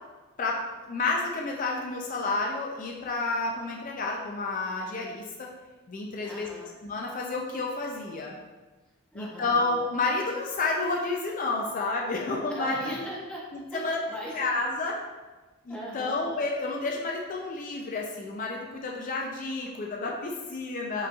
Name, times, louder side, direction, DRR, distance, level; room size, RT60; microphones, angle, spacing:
voice 1, 0.9-5.5 5.9-6.5 6.8-8.4 9.1-13.0 13.7-14.0 14.3-15.0 15.6-21.1, left 3 dB, 40° left, -1 dB, 0.4 m, -30 dB
voice 2, 6.2-6.8 9.1-9.6 12.5-13.4 13.7-14.5 15.7-16.2, equal, 5° left, -6 dB, 0.8 m, -40 dB
4.8 x 3.1 x 2.3 m, 1.2 s
head